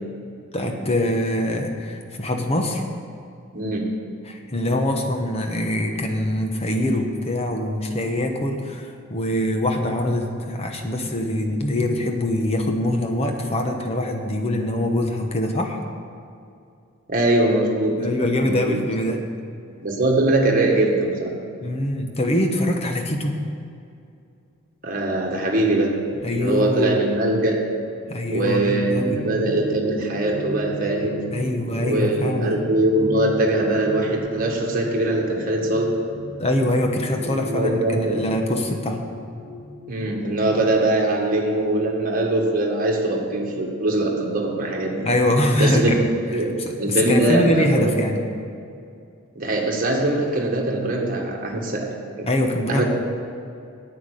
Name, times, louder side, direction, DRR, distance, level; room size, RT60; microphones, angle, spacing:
voice 1, 0.5-2.8 4.2-15.8 18.0-19.2 21.6-23.4 26.2-27.0 28.1-29.2 31.3-32.7 36.4-39.0 45.0-46.1 46.4-48.2 52.3-52.8, left 1 dB, 30° left, 3 dB, 1.0 m, -23 dB
voice 2, 3.5-3.9 17.1-18.0 18.4-18.8 19.8-21.3 24.8-27.6 28.3-31.3 31.8-35.9 37.3-38.2 39.9-45.1 45.6-46.0 46.3-48.0 49.4-52.3 52.7-52.8, right 2 dB, 40° right, 0 dB, 1.7 m, -22 dB
sound 1, 27.9-40.7, left 2 dB, 80° left, 1.3 m, -36 dB
9.4 x 8.9 x 6.6 m, 2.4 s
head